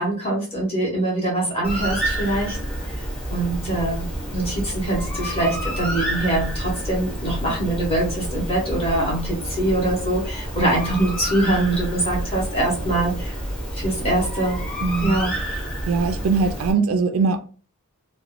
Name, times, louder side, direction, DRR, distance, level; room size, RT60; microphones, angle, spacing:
voice 1, 0.0-2.6 3.3-4.1 4.3-13.3 13.7-14.6 15.0-15.3, right 1 dB, 25° left, 1.3 m, -23 dB
Bird, 1.6-16.7, equal, 5° left, 0.6 m, -29 dB
voice 2, 14.8-15.2 15.5-15.6 15.9-17.4, right 4 dB, 60° right, 0.3 m, -21 dB
2.9 x 2.2 x 2.5 m
head